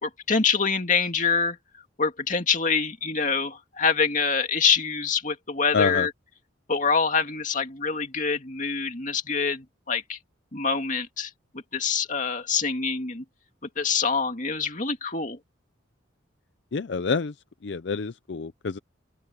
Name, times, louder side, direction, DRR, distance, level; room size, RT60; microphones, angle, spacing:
voice 1, 0.0-1.6 2.0-6.1 6.7-10.2 10.5-11.3 11.7-13.2 13.8-15.4, left 5 dB, 40° left, 2.4 m, -25 dB
voice 2, 5.7-6.1 16.7-17.3 17.6-18.8, left 5 dB, 60° left, 0.5 m, -27 dB
open air
head